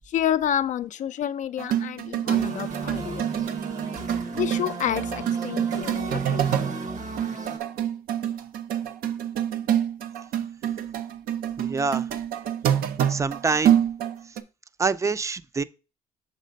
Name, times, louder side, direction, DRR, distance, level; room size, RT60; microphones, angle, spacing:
voice 1, 0.1-3.3 4.3-6.8, left 10 dB, 55° left, 0.4 m, -29 dB
sound 1, 1.6-6.8 7.2-14.4, right 10 dB, 75° right, 0.6 m, -27 dB
sound 2, 2.3-7.6, right 3 dB, 55° right, 1.1 m, -34 dB
voice 2, 11.6-12.1 13.1-13.8 14.8-15.6, right 4 dB, 20° right, 0.4 m, -26 dB
6.5 x 3.3 x 5.1 m
cardioid pair, 80°, 15 cm